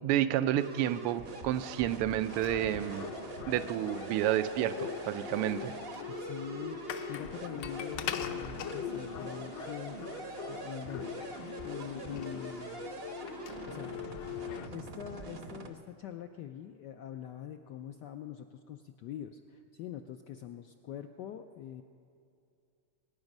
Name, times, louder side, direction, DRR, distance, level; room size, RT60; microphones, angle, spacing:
voice 1, 0.0-3.1 3.5-5.7, right 12 dB, 90° right, 12 dB, 1.6 m, -30 dB
sound 1, 0.6-15.7, right 4 dB, 50° right, 0.7 m, -44 dB
sound 2, 2.3-14.7, left 9 dB, 65° left, 1.2 m, -41 dB
voice 2, 6.2-10.0 10.5-12.9 13.7-14.0 14.7-21.8, left 10 dB, 80° left, 7 dB, 0.9 m, -44 dB
22.0 x 9.7 x 5.3 m, 2.5 s
omnidirectional pair, 2.4 m